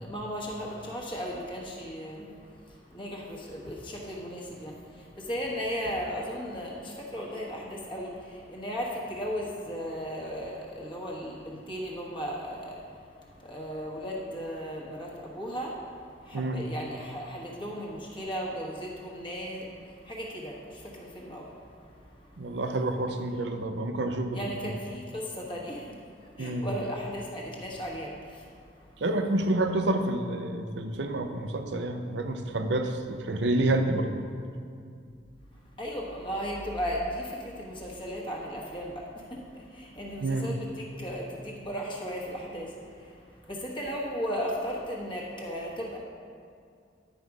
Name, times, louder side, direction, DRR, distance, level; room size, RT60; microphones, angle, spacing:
voice 1, 0.0-2.3 2.9-12.8 13.4-15.8 16.2-19.7 20.0-21.5 24.3-25.9 26.4-28.4 35.8-42.7 43.5-46.0, equal, 30° left, -3 dB, 1.3 m, -36 dB
voice 2, 16.3-16.6 22.4-24.7 26.4-26.7 29.0-34.1 40.2-40.5, right 2 dB, 70° right, 6 dB, 0.6 m, -28 dB
10.0 x 5.2 x 4.7 m, 2.3 s
head